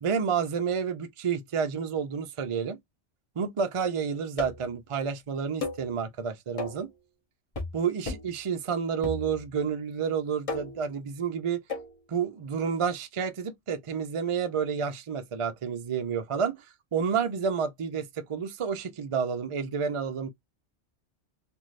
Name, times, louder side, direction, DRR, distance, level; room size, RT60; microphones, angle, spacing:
voice 1, 0.0-2.8 3.4-6.9 7.7-11.6 12.1-16.6 16.9-20.3, right 6 dB, 50° right, 0.3 m, -30 dB
sound 1, 4.4-4.8 5.6-5.9 6.6-6.9 7.6-7.8 8.1-8.4 9.0-9.6 10.5-10.9 11.7-11.9, left 3 dB, 30° left, 1.0 m, -35 dB
3.1 x 2.6 x 2.5 m
omnidirectional pair, 1.2 m